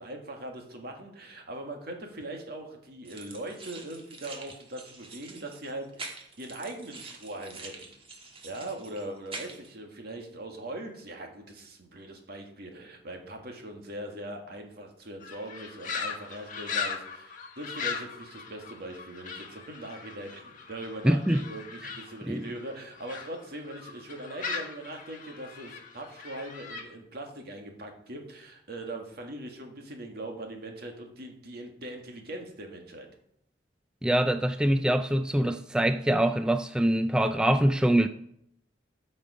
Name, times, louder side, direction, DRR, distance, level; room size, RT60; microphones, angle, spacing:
voice 1, 0.0-7.9 8.4-33.1, right 1 dB, 60° right, 1.8 m, -41 dB
sound 1, 3.0-9.7, right 3 dB, 30° right, 1.5 m, -45 dB
sound 2, 15.2-23.3 23.7-26.8, left 5 dB, 45° left, 1.5 m, -39 dB
voice 2, 21.0-21.4 22.3-22.4 34.0-38.1, right 1 dB, 5° right, 0.3 m, -24 dB
13.0 x 5.3 x 4.9 m
head